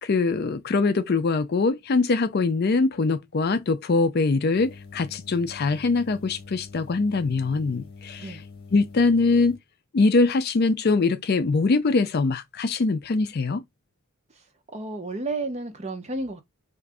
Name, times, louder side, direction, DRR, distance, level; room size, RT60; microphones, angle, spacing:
voice 1, 0.0-8.2 8.7-9.6 9.9-13.6, left 3 dB, 45° left, 0.4 m, -23 dB
sound 1, 4.5-9.6, left 4 dB, 60° left, 1.3 m, -45 dB
voice 2, 14.3-16.4, right 2 dB, 30° right, 0.7 m, -32 dB
3.7 x 2.5 x 3.4 m
head